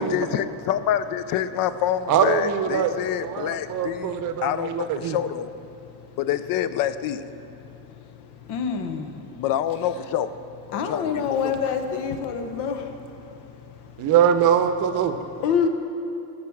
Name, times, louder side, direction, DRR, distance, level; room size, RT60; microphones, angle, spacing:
voice 1, 0.0-5.5 6.2-7.2 9.4-10.4 10.7-11.4, left 10 dB, 55° left, 13 dB, 0.5 m, -27 dB
voice 2, 2.1-2.9 3.2-5.2 14.0-15.2, right 8 dB, 50° right, 9 dB, 0.7 m, -22 dB
voice 3, 8.5-9.1 10.7-12.8 15.4-15.7, left 6 dB, 70° left, 7 dB, 0.9 m, -25 dB
12.5 x 6.7 x 7.1 m, 2.7 s
cardioid pair, 175°, 41 cm